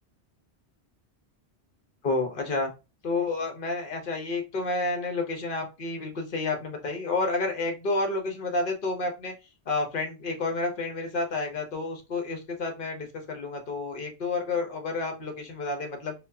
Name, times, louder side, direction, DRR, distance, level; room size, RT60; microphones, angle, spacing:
voice 1, 2.0-2.7 3.0-9.3 9.7-16.1, left 3 dB, 50° left, 4 dB, 1.0 m, -30 dB
4.3 x 2.3 x 2.6 m, 0.27 s
omnidirectional pair, 1.1 m